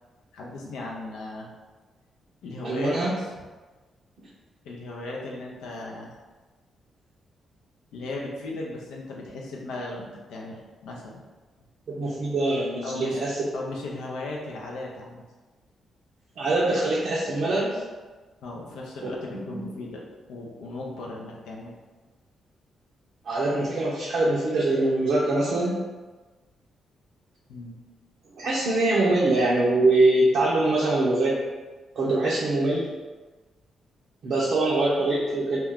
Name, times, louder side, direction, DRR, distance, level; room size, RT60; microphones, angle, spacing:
voice 1, 0.3-1.5 2.4-3.3 4.6-6.1 7.9-11.2 12.8-13.2 13.5-15.2 18.4-20.0 20.3-21.7 27.5-27.8, left 2 dB, 75° left, -2 dB, 0.5 m, -36 dB
voice 2, 2.6-3.1 11.9-13.3 16.4-17.8 19.5-19.6 23.2-25.8 28.4-31.4 32.0-32.9 34.2-35.6, right 2 dB, 65° right, -5 dB, 0.5 m, -23 dB
2.3 x 2.2 x 3.5 m, 1.3 s
hypercardioid pair, 45°, 0 cm